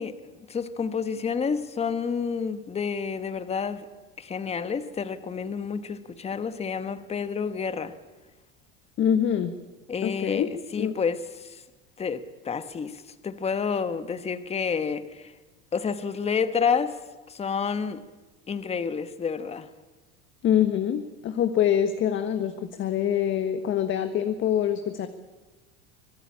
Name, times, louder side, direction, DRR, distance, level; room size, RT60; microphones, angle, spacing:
voice 1, 0.0-3.8 4.2-7.9 9.9-11.6 12.0-15.3 15.7-17.0 17.3-18.0 18.5-19.7, left 6 dB, 20° left, 1.3 m, -29 dB
voice 2, 9.0-9.5 10.0-10.5 10.8-10.9 20.4-25.1, left 9 dB, 40° left, 1.5 m, -25 dB
25.5 x 18.5 x 8.7 m
supercardioid pair, 130°, 31 cm